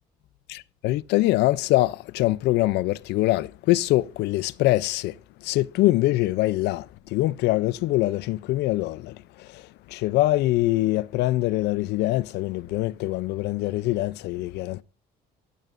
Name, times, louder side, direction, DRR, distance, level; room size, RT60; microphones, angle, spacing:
voice 1, 0.5-5.2 5.4-14.8, left 17 dB, 80° left, 0.5 m, -24 dB
17.0 x 12.5 x 2.5 m
cardioid pair, 110°, 17 cm